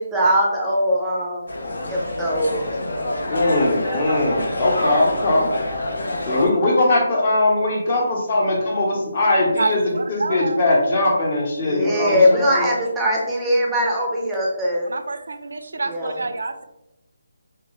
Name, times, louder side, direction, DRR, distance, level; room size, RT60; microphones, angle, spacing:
voice 1, 0.0-1.4 1.9-2.6 11.6-14.9 15.9-16.1, equal, 5° right, -3 dB, 0.5 m, -21 dB
people waiting for the train and taking it, 1.5-6.5, left 1 dB, 70° left, 0.7 m, -26 dB
voice 2, 3.3-5.5 6.2-9.8 10.1-12.7, left 2 dB, 35° left, -1 dB, 0.8 m, -20 dB
voice 3, 9.6-10.6 14.8-16.6, right 3 dB, 75° right, 8 dB, 0.4 m, -27 dB
2.9 x 2.7 x 2.9 m, 0.90 s
hypercardioid pair, 170°, 0 cm